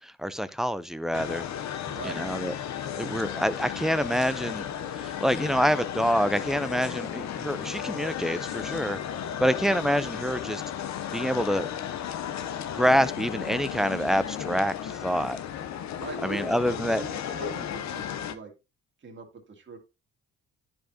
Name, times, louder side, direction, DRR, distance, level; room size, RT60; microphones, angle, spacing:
voice 1, 0.0-1.4 2.0-2.5 3.0-4.7 4.9-9.0 9.4-10.6 11.1-11.7 12.7-15.4 16.2-17.0, equal, ahead, 0.5 m, -26 dB
sound 1, 1.1-18.3, left 9 dB, 65° left, 0.7 m, -34 dB
voice 2, 1.8-2.2 16.0-18.5 19.0-19.8, right 5 dB, 40° right, 1.9 m, -42 dB
10.0 x 4.8 x 2.7 m
cardioid pair, 90°, 30 cm